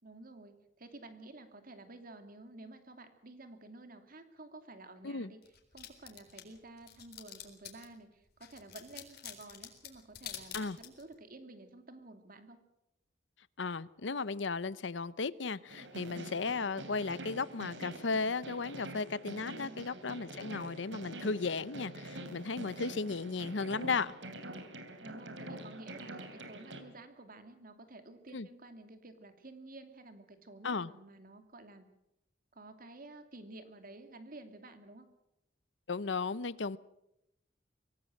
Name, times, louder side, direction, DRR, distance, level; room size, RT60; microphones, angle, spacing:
voice 1, 0.0-5.4 5.7-12.6 19.4-19.9 25.0-31.9 32.5-35.0, right 2 dB, 50° right, 2.7 m, -52 dB
sound 1, 5.4-7.9 8.4-11.1, left 11 dB, 60° left, 4.1 m, -46 dB
voice 2, 13.6-24.1 28.3-28.5 30.6-30.9 35.9-36.8, left 4 dB, 85° left, 0.8 m, -35 dB
sound 2, 15.7-26.8, right 1 dB, 85° right, 3.0 m, -46 dB
24.0 x 17.5 x 7.8 m
head